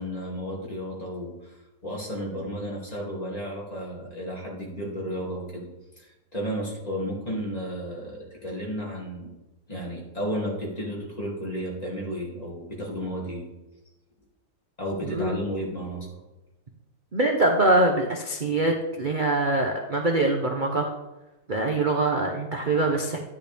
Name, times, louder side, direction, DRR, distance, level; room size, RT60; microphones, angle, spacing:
voice 1, 0.0-1.6 1.8-5.7 6.0-9.3 9.7-13.4 14.8-16.1, equal, 20° left, -4 dB, 2.6 m, -33 dB
voice 2, 15.0-15.4 17.1-20.9 21.5-23.2, right 2 dB, 40° right, 2 dB, 0.7 m, -23 dB
12.5 x 10.0 x 3.5 m, 1.1 s
omnidirectional pair, 2.0 m